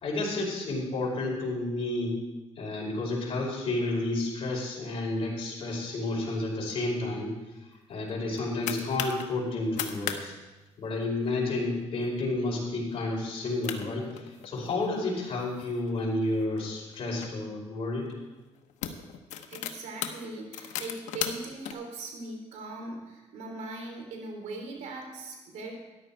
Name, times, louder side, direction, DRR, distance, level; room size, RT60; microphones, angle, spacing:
voice 1, 0.0-2.2 2.6-7.3 7.9-10.3 10.8-18.1, left 2 dB, 50° left, -3 dB, 5.1 m, -31 dB
sound 1, 8.1-9.2 9.6-10.2 10.5-10.6 10.9-11.3 11.8-12.1 12.5-12.6 13.3-13.4 13.6-14.8 15.4-17.3 18.1-18.2 18.6-21.7, left 9 dB, 90° left, 1.0 m, -37 dB
voice 2, 19.5-25.7, right 2 dB, 85° right, 2 dB, 3.1 m, -40 dB
13.5 x 10.5 x 4.5 m, 1.1 s
cardioid pair, 95°, 12 cm